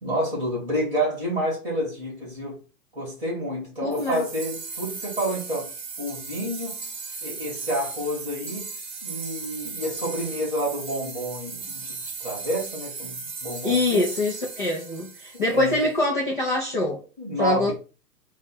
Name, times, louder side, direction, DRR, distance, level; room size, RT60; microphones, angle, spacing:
voice 1, 0.0-2.6 2.9-5.7 6.0-6.9 7.2-8.7 9.0-14.1 15.5-15.8 17.2-17.7, equal, 5° right, 2.0 m, -29 dB
voice 2, 3.8-4.2 13.6-17.0 17.4-17.7, left 2 dB, 30° left, 0.7 m, -24 dB
sound 1, 3.9-15.9, right 4 dB, 30° right, 0.7 m, -37 dB
4.2 x 2.4 x 4.2 m
hypercardioid pair, 180°, 49 cm